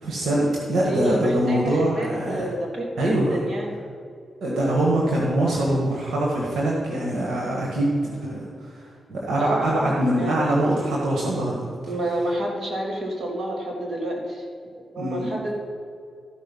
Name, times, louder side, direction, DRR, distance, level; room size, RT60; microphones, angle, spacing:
voice 1, 0.0-2.5 3.0-3.4 4.4-8.5 8.8-11.6 15.0-15.3, right 1 dB, 75° right, -4 dB, 1.8 m, -23 dB
voice 2, 0.8-3.7 9.4-10.5 11.9-15.5, right 1 dB, 50° right, -2 dB, 2.8 m, -29 dB
14.5 x 5.0 x 5.5 m, 2.4 s
supercardioid pair, 55°, 0 cm